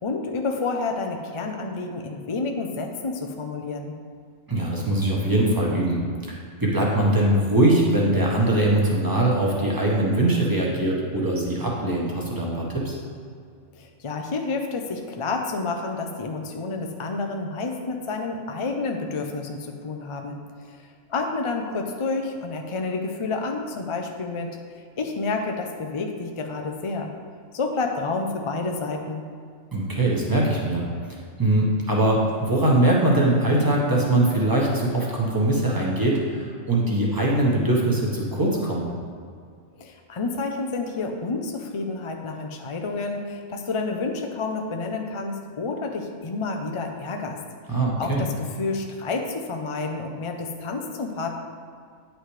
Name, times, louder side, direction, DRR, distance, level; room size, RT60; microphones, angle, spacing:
voice 1, 0.0-3.9 13.7-20.8 21.1-24.6 25.0-27.1 27.5-29.2 39.8-47.4 48.0-51.4, left 3 dB, 45° left, 3 dB, 0.4 m, -29 dB
voice 2, 4.5-6.0 6.3-13.0 29.7-30.8 31.4-38.8 47.7-48.2, right 1 dB, 15° right, -3 dB, 1.2 m, -22 dB
9.4 x 6.1 x 3.3 m, 2.1 s
omnidirectional pair, 1.3 m